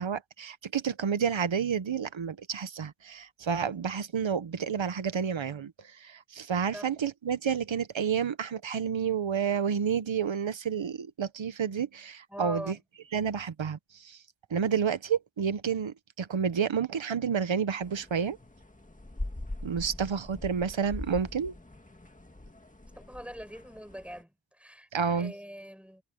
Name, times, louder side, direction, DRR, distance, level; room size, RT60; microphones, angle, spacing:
voice 1, 0.0-12.8 13.1-14.2 14.5-18.4 19.6-21.5 24.9-25.3, right 7 dB, 85° right, 1.2 m, -30 dB
voice 2, 12.3-12.8 23.0-24.9 25.2-26.0, equal, 5° right, 7.8 m, -42 dB
sound 1, 17.8-24.2, left 1 dB, 15° left, 1.9 m, -42 dB
wide cardioid pair, 90°, 45 cm